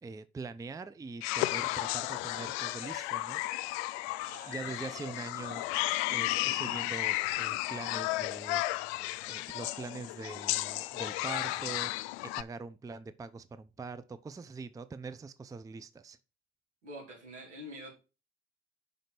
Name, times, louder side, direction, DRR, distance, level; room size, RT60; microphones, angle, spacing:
voice 1, 0.0-3.4 4.2-5.7 6.1-9.0 9.3-16.2, right 4 dB, 10° right, 0.5 m, -43 dB
sound 1, 1.2-12.4, left 17 dB, 65° left, 0.5 m, -33 dB
voice 2, 4.2-4.9 16.8-17.9, equal, 85° right, 3.0 m, -47 dB
5.2 x 5.2 x 6.0 m
hypercardioid pair, 60°, 35 cm